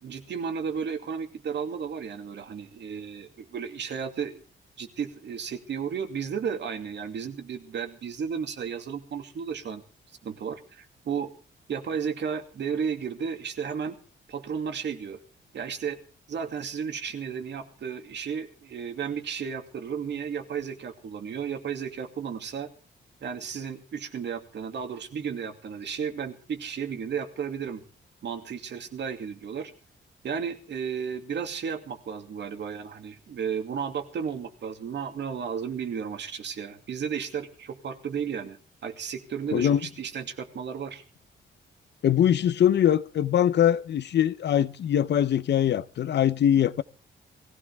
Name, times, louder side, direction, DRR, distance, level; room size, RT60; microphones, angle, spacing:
voice 1, 0.0-4.4 4.8-9.8 10.2-11.3 11.7-13.9 14.3-15.2 15.5-16.0 16.3-22.7 23.2-27.8 28.2-29.7 30.2-41.0, right 7 dB, 60° right, 2.5 m, -33 dB
voice 2, 42.0-46.8, left 10 dB, 60° left, 0.7 m, -22 dB
21.0 x 16.0 x 3.6 m
wide cardioid pair, 145°, 20 cm